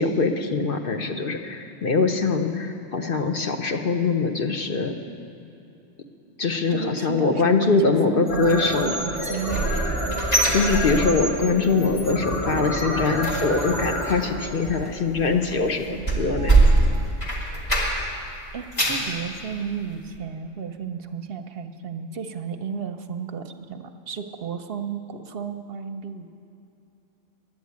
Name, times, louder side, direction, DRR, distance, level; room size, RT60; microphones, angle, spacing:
voice 1, 0.0-4.9 6.4-8.9 10.5-16.6, left 4 dB, 50° left, 4 dB, 0.8 m, -23 dB
voice 2, 6.7-10.6 18.5-26.3, right 6 dB, 55° right, 7 dB, 0.7 m, -33 dB
sound 1, 8.2-15.2, equal, 70° left, 4.0 m, -29 dB
sound 2, 8.3-17.1, right 4 dB, 25° right, 0.8 m, -39 dB
sound 3, 9.1-11.5 11.8-12.1 12.4-18.2 18.5-19.1 19.6-19.7 20.1-20.2, right 2 dB, 30° left, 2.1 m, -23 dB
11.0 x 8.4 x 9.4 m, 2.7 s
omnidirectional pair, 1.4 m